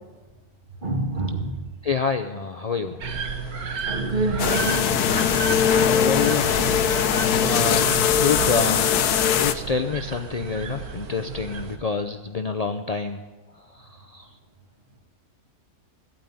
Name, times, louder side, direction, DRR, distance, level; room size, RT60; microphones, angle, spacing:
voice 1, 0.8-1.6 3.9-4.8, right 2 dB, 30° right, 1 dB, 2.2 m, -26 dB
voice 2, 1.8-3.0 5.6-8.9 9.3-13.2 14.1-14.3, left 5 dB, 65° left, 6 dB, 0.4 m, -27 dB
sound 1, 3.0-11.8, right 5 dB, 75° right, 1.8 m, -32 dB
sound 2, 4.4-9.5, left 8 dB, 85° left, 1.3 m, -21 dB
14.5 x 8.8 x 9.4 m, 1.2 s
omnidirectional pair, 1.6 m